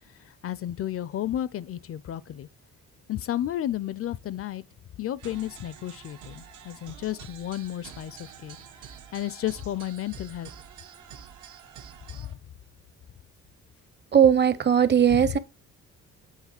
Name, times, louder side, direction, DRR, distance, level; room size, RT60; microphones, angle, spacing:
voice 1, 0.2-2.5 3.1-4.6 5.0-8.6 9.1-10.5 12.1-12.4 15.1-15.3, left 12 dB, 50° left, 0.4 m, -32 dB
sound 1, 5.2-12.3, right 8 dB, 80° right, 1.2 m, -47 dB
voice 2, 14.1-15.4, right 8 dB, 35° right, 0.7 m, -19 dB
7.4 x 3.2 x 5.8 m
cardioid pair, 90°, 30 cm